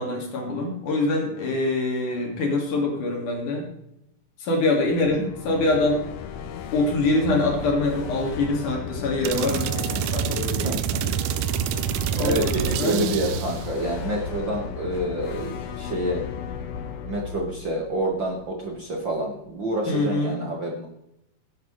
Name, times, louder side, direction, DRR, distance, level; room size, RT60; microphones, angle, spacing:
voice 1, 0.0-3.7 4.4-6.0 6.7-11.1 12.1-13.1 19.9-20.4, left 2 dB, 60° left, 1 dB, 3.4 m, -25 dB
sound 1, 4.8-18.8, left 6 dB, 80° left, 2.8 m, -35 dB
sound 2, 9.2-13.7, right 11 dB, 85° right, 1.8 m, -27 dB
voice 2, 10.6-11.0 12.2-16.2 17.0-20.9, right 1 dB, 50° right, -1 dB, 1.4 m, -28 dB
16.5 x 9.5 x 3.2 m, 0.80 s
omnidirectional pair, 4.3 m